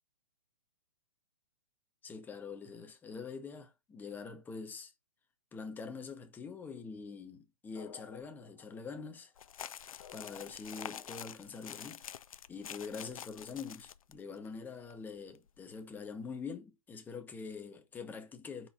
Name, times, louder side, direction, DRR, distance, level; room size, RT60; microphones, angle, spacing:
voice 1, 2.0-4.9 5.5-9.3 10.1-12.0 12.5-18.7, left 5 dB, 10° left, 0.8 m, -44 dB
sound 1, 7.7-11.4, left 8 dB, 55° left, 1.0 m, -55 dB
sound 2, 9.4-14.2 14.4-14.5 14.9-15.0 15.3-15.6, left 9 dB, 80° left, 0.4 m, -47 dB
4.6 x 4.3 x 2.6 m
hypercardioid pair, 140°, 18 cm